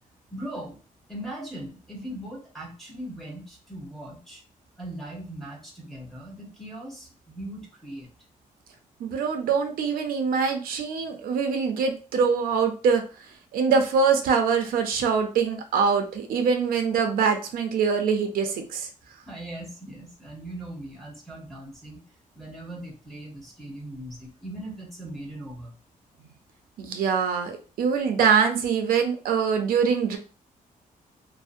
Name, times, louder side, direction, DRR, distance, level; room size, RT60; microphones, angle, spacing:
voice 1, 0.3-0.8 1.1-4.4 4.8-8.1 19.3-22.0 22.3-25.7, right 1 dB, ahead, -3 dB, 0.7 m, -39 dB
voice 2, 9.0-13.0 13.5-18.9 26.8-30.2, right 6 dB, 90° right, 4 dB, 0.5 m, -24 dB
2.6 x 2.0 x 2.4 m, 0.35 s
wide cardioid pair, 165°, 15 cm